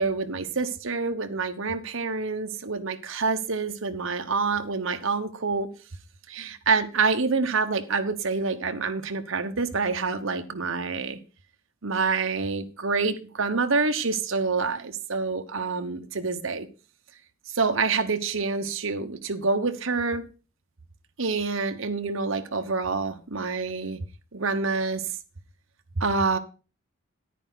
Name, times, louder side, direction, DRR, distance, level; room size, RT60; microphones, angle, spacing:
voice 1, 0.0-5.7 6.3-11.2 11.8-16.7 17.5-20.2 21.2-24.0 24.3-25.1 26.0-26.4, right 4 dB, 70° right, 8 dB, 1.1 m, -27 dB
10.0 x 9.9 x 4.0 m, 0.33 s
head